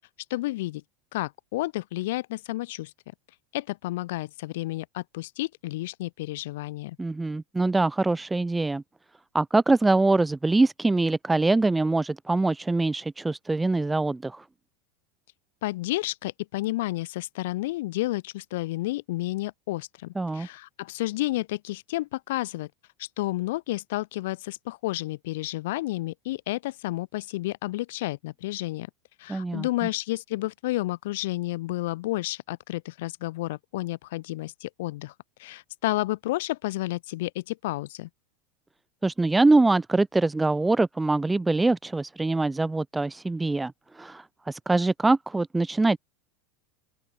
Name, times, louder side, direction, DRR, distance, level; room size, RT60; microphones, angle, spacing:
voice 1, 0.3-0.8 1.1-2.9 3.5-7.0 15.6-22.7 23.0-28.9 29.2-35.1 35.4-38.1, left 18 dB, 60° left, 6.5 m, -31 dB
voice 2, 7.0-8.8 9.3-14.4 20.1-20.5 29.3-29.7 39.0-46.0, right 2 dB, 10° right, 2.9 m, -24 dB
open air
figure-of-eight pair, 80°, 0 cm